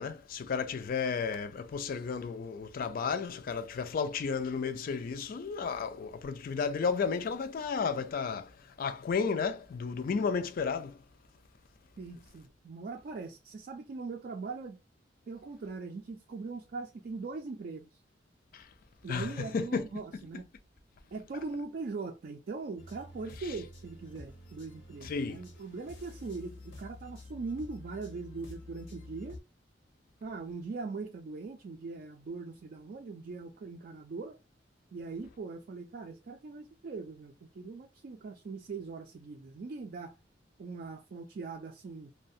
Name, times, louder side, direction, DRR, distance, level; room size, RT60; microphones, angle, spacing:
voice 1, 0.0-8.5 8.8-10.9 19.1-19.8 25.1-25.4, left 5 dB, 50° left, 0.4 m, -33 dB
voice 2, 12.0-14.8 15.3-18.0 19.0-20.5 21.1-29.4 30.2-34.4 34.9-40.2 40.6-42.1, right 4 dB, 50° right, 0.4 m, -41 dB
sound 1, 22.8-29.4, left 2 dB, 80° left, 0.8 m, -49 dB
2.4 x 2.1 x 2.6 m
head